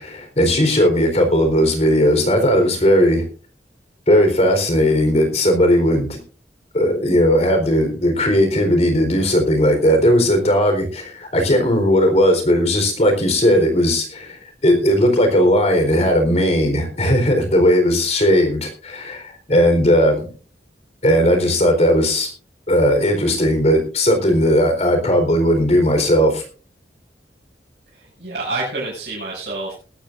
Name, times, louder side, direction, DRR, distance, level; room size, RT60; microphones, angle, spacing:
voice 1, 0.0-3.3 4.1-6.2 6.7-20.3 21.0-22.3 22.7-26.4, equal, 40° left, 5 dB, 4.1 m, -17 dB
voice 2, 27.9-29.7, right 2 dB, 65° right, -7 dB, 7.0 m, -28 dB
20.5 x 13.0 x 2.6 m, 0.37 s
head